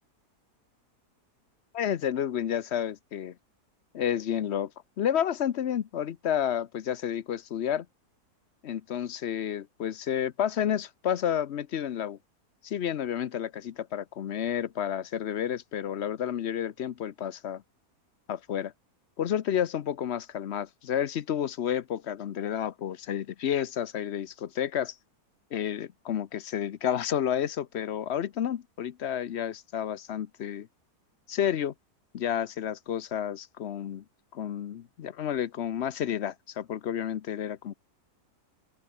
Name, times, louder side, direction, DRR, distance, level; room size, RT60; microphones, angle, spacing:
voice 1, 1.7-3.3 3.9-4.7 5.0-7.9 8.6-12.2 12.6-17.6 18.3-18.7 19.2-24.9 25.5-30.7 31.3-31.7 32.1-34.0 34.3-37.7, left 9 dB, 55° left, 0.8 m, -30 dB
open air
omnidirectional pair, 1.7 m